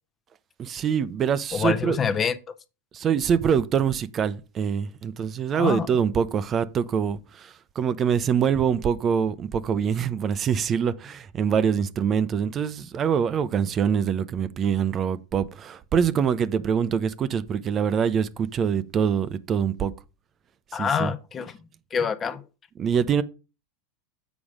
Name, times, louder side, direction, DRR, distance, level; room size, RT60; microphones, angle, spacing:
voice 1, 0.6-2.0 2.9-19.9 20.7-21.1 22.8-23.2, right 7 dB, 30° right, 0.6 m, -24 dB
voice 2, 1.5-2.4 5.6-5.9 20.7-21.6 21.9-22.4, left 6 dB, 25° left, 0.7 m, -26 dB
7.2 x 5.0 x 4.9 m
hypercardioid pair, 110°, 0 cm